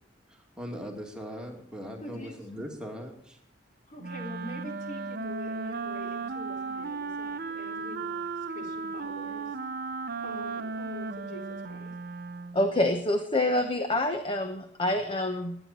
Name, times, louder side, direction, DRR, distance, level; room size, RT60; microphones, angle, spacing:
voice 1, 0.3-3.4, equal, 5° right, 0 dB, 2.6 m, -40 dB
voice 2, 2.0-2.5 3.9-9.6 10.2-12.0, left 1 dB, 45° left, 2 dB, 3.7 m, -44 dB
Wind instrument woodwind instrument, 4.0-12.7, right 4 dB, 55° right, 0.8 m, -35 dB
voice 3, 12.5-15.6, left 1 dB, 30° left, 6 dB, 1.1 m, -27 dB
21.0 x 10.0 x 4.4 m, 0.67 s
head